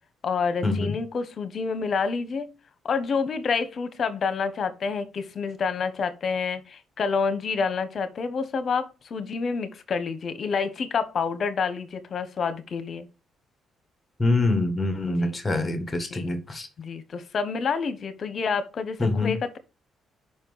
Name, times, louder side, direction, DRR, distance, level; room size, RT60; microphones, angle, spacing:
voice 1, 0.2-2.5 2.8-13.1 15.0-15.4 16.1-16.3 16.8-19.6, left 5 dB, 50° left, 1.0 m, -28 dB
voice 2, 14.2-16.7 19.0-19.4, left 2 dB, 20° left, 1.8 m, -25 dB
5.4 x 4.4 x 5.6 m
cardioid pair, 90°, 0 cm